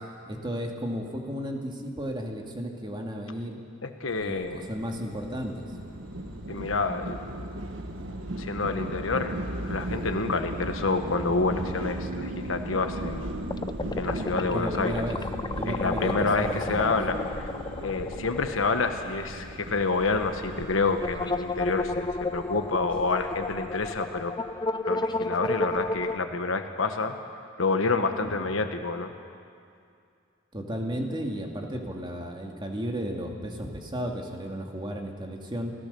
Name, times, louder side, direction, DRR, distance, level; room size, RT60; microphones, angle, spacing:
voice 1, 0.3-3.6 4.2-5.7 14.5-15.2 15.5-17.0 28.2-28.5 30.5-35.7, equal, 25° right, 1 dB, 2.3 m, -34 dB
voice 2, 3.8-4.6 6.5-7.2 8.4-13.3 14.0-15.0 15.7-17.5 17.8-24.3 24.9-27.2 27.6-29.1, left 3 dB, 85° left, 6 dB, 1.3 m, -28 dB
sound 1, 4.1-23.9, equal, 5° left, 5.1 m, -49 dB
sound 2, 4.2-21.6, right 1 dB, 75° right, 1.5 m, -37 dB
sound 3, 13.5-19.2 19.5-19.6 20.9-26.2, left 2 dB, 20° left, 0.5 m, -32 dB
29.0 x 15.5 x 6.9 m, 2.4 s
head